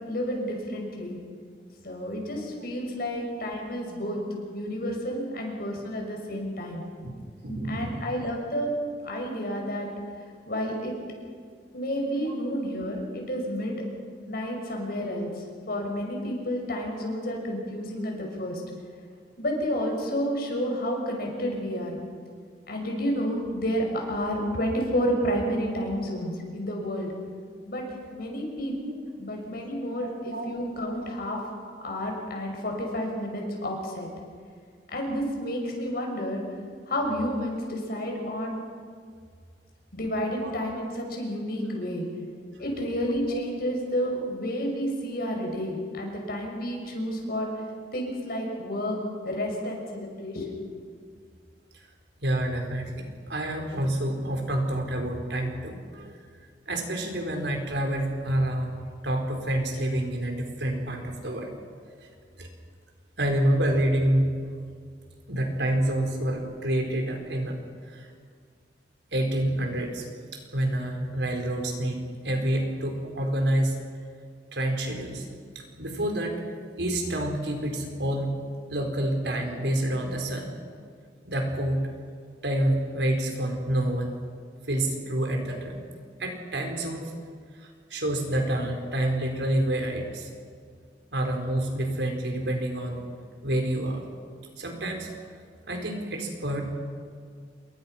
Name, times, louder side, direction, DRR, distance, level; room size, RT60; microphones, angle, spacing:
voice 1, 0.1-1.2 1.8-4.2 4.5-6.8 7.7-8.7 9.0-9.9 10.5-10.9 11.7-13.8 14.3-18.6 19.4-22.0 22.7-27.1 27.6-27.8 28.1-28.7 29.2-31.4 31.8-34.1 34.9-36.4 36.9-38.6 39.9-42.1 42.6-47.5 47.9-49.0 49.2-50.6, equal, 60° left, 1 dB, 6.2 m, -30 dB
voice 2, 7.4-8.0 28.3-28.4 28.8-28.9 30.0-30.5 31.0-31.1 40.4-40.5 42.5-42.6 43.3-43.4 52.2-56.1 56.7-58.8 59.0-61.5 62.4-62.5 63.2-64.3 65.3-67.6 67.9-68.1 69.1-70.0 70.5-73.8 74.5-75.2 75.8-76.3 76.8-78.4 78.7-80.6 81.2-81.8 82.4-84.2 84.7-85.8 86.2-87.1 87.6-90.3 91.1-93.0 93.4-94.0 94.6-95.1 95.7-96.6, right 1 dB, 80° right, 2 dB, 4.7 m, -28 dB
28.5 x 22.5 x 5.9 m, 2.1 s
head